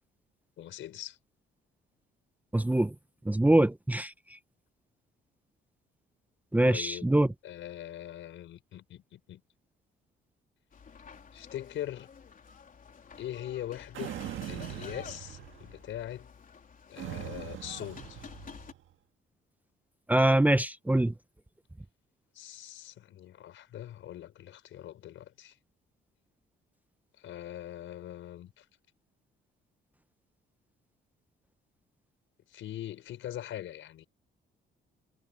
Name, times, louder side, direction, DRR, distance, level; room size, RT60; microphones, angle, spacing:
voice 1, 0.6-1.2 6.7-7.1 7.4-9.4 11.3-12.1 13.2-14.1 14.5-16.3 16.9-18.2 22.3-25.6 27.2-28.6 32.5-34.0, left 12 dB, 75° left, 4.8 m, -42 dB
voice 2, 2.5-2.9 3.3-4.1 6.5-7.3 20.1-21.1, right 1 dB, 10° right, 0.8 m, -24 dB
sound 1, 10.7-18.7, left 6 dB, 45° left, 3.8 m, -50 dB
sound 2, 13.9-15.8 17.0-18.8, right 13 dB, 80° right, 1.7 m, -41 dB
cardioid pair, 90°, 20 cm